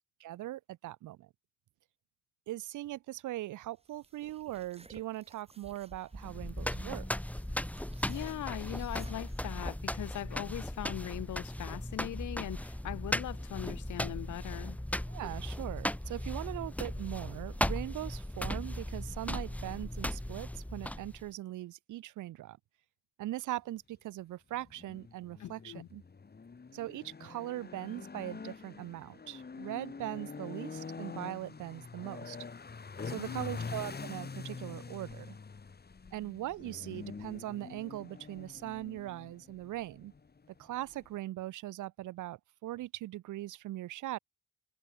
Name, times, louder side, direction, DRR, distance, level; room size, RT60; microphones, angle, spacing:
voice 1, 0.2-1.3 2.5-7.1 15.1-22.6 23.2-26.0 26.7-32.4 33.0-35.4 36.1-40.1 40.6-44.2, right 15 dB, 80° right, 1.2 m, -40 dB
sound 1, 3.8-9.4, right 3 dB, 20° right, 7.4 m, -55 dB
sound 2, 6.2-21.3, left 1 dB, 5° left, 4.2 m, -37 dB
voice 2, 8.1-14.8 25.4-25.9 33.0-33.7, left 13 dB, 75° left, 2.1 m, -40 dB
sound 3, 24.5-41.2, left 5 dB, 30° left, 6.2 m, -45 dB
cardioid pair, 90°, 30 cm